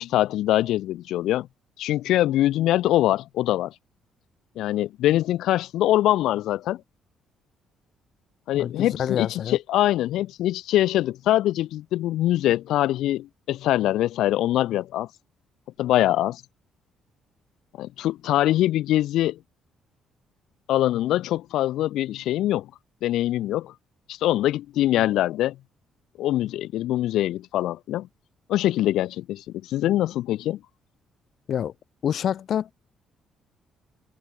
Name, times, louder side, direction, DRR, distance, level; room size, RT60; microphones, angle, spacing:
voice 1, 0.0-1.5 1.8-3.7 4.6-6.8 8.5-15.1 15.8-16.4 17.8-19.4 20.7-22.7 23.0-23.7 24.1-25.6 26.2-28.1 28.5-30.6, left 14 dB, 80° left, 0.3 m, -23 dB
voice 2, 8.5-9.6 31.5-31.7 32.0-32.7, left 9 dB, 45° left, 0.8 m, -27 dB
cardioid pair, 170°, 0 cm